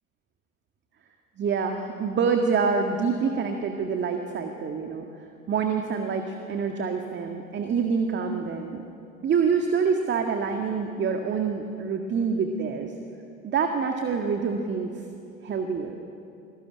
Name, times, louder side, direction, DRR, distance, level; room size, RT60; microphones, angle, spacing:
voice 1, 1.4-5.1 5.5-8.8 9.2-12.9 13.4-15.0 15.4-16.0, right 5 dB, 25° right, 5 dB, 1.8 m, -26 dB
28.0 x 20.0 x 9.8 m, 2.7 s
figure-of-eight pair, 85°, 44 cm